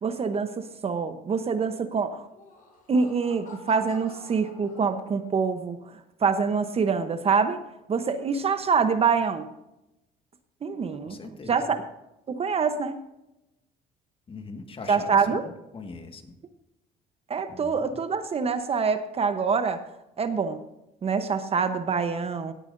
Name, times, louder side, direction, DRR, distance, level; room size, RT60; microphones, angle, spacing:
voice 1, 0.0-2.3 2.9-7.6 7.9-9.5 10.6-11.2 11.5-11.8 12.3-13.0 14.9-15.4 17.3-19.8 20.2-20.6 21.0-22.5, right 5 dB, 35° right, 10 dB, 0.9 m, -25 dB
Laughter, 2.2-5.4, left 3 dB, 55° left, 4.3 m, -48 dB
voice 2, 11.0-11.7 14.3-16.3 17.5-18.0, left 3 dB, 35° left, 6 dB, 1.7 m, -41 dB
17.5 x 9.0 x 2.6 m, 0.91 s
cardioid pair, 110°, 17 cm